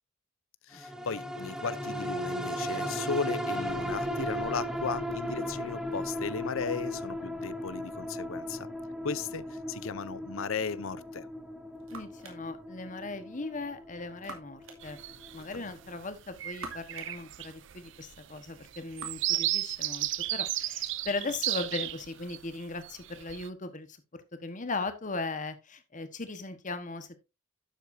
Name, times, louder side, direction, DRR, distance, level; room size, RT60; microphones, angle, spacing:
voice 1, 0.7-8.7 9.0-11.3 15.5-15.7, left 5 dB, 75° left, 0.6 m, -36 dB
sound 1, 0.8-15.5 15.9-16.0, equal, 5° right, 0.9 m, -36 dB
sound 2, 11.2-21.4, right 3 dB, 75° right, 2.4 m, -52 dB
voice 2, 11.9-15.0 15.3-24.0 24.4-27.1, left 3 dB, 40° left, 1.3 m, -38 dB
sound 3, 14.8-15.4 15.9-16.1 16.3-22.4 22.8-23.5, right 15 dB, 60° right, 0.5 m, -33 dB
11.5 x 8.0 x 2.6 m
head